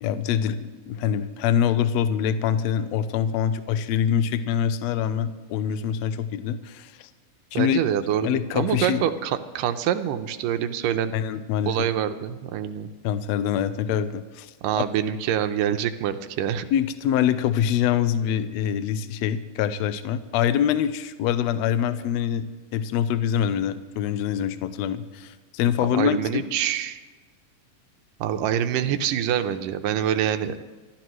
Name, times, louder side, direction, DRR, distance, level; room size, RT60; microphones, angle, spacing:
voice 1, 0.0-7.1 7.5-7.8 8.2-9.0 11.1-11.9 13.0-14.5 16.7-26.5, left 9 dB, 75° left, 12 dB, 1.6 m, -25 dB
voice 2, 7.5-11.1 11.7-12.9 14.6-16.7 25.9-27.0 28.2-30.6, right 10 dB, 85° right, 9 dB, 2.4 m, -25 dB
26.5 x 13.5 x 3.1 m, 1.3 s
omnidirectional pair, 3.7 m